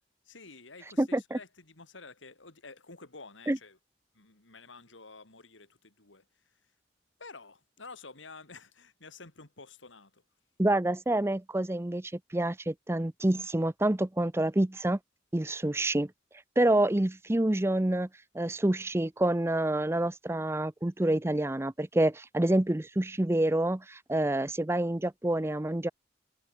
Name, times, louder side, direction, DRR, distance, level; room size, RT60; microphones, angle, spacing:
voice 1, 0.2-3.8 4.1-6.6 7.2-10.2, left 3 dB, 85° left, 3.2 m, -50 dB
voice 2, 1.0-1.4 3.5-3.6 10.6-15.0 15.3-16.1 16.6-18.1 18.3-25.9, right 1 dB, 15° right, 0.5 m, -27 dB
head